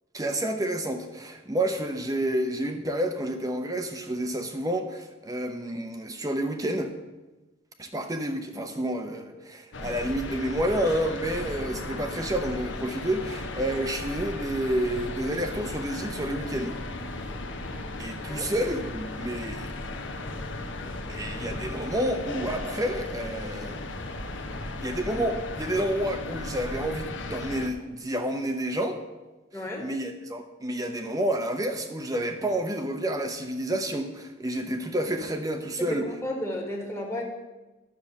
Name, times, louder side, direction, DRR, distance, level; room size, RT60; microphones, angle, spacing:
voice 1, 0.1-6.9 7.8-16.8 18.0-19.7 21.1-23.8 24.8-29.0 29.5-36.1, right 1 dB, 15° right, 6 dB, 0.6 m, -29 dB
sound 1, 9.7-27.7, left 2 dB, 60° left, 1.0 m, -36 dB
voice 2, 29.5-29.9 35.8-37.2, equal, 15° left, -1 dB, 1.5 m, -32 dB
10.5 x 6.6 x 7.2 m, 1.1 s
head